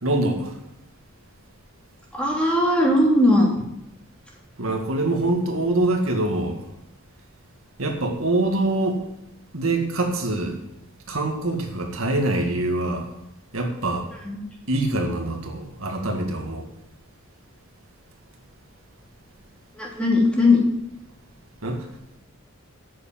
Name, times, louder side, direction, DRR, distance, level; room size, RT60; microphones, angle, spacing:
voice 1, 0.0-0.5 4.6-6.6 7.8-9.0 9.5-10.6 11.1-13.1 13.5-14.1 14.7-16.6 21.6-21.9, right 2 dB, 70° right, 2 dB, 2.1 m, -24 dB
voice 2, 2.1-3.5 14.2-14.4 19.7-20.6, left 2 dB, 5° left, -3 dB, 3.2 m, -18 dB
8.6 x 7.0 x 8.7 m, 0.83 s
head